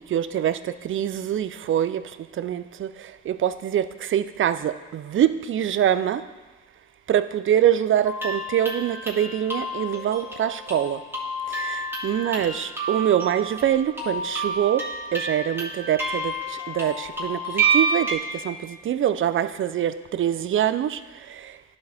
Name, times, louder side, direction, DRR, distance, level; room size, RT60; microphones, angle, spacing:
voice 1, 0.1-0.6 0.8-2.0 2.4-2.9 3.3-6.2 7.1-11.0 11.6-14.8 15.1-16.3 16.7-18.6 18.9-21.0, right 10 dB, 45° right, 12 dB, 0.4 m, -24 dB
sound 1, 8.0-18.2, right 3 dB, 5° right, 1.9 m, -29 dB
11.5 x 4.0 x 3.4 m, 1.3 s
cardioid pair, 90°, 30 cm